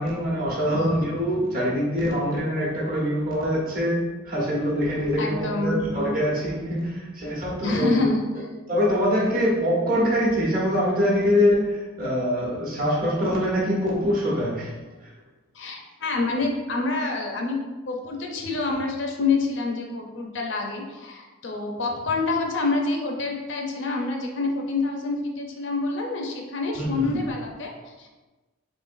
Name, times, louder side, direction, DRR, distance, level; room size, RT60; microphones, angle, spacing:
voice 1, 0.0-8.0 8.7-14.7 26.7-27.2, equal, 40° right, -6 dB, 1.1 m, -24 dB
voice 2, 5.2-5.8 7.6-8.5 15.5-28.1, left 3 dB, 55° left, 1 dB, 0.6 m, -27 dB
3.7 x 3.7 x 2.6 m, 1.2 s
head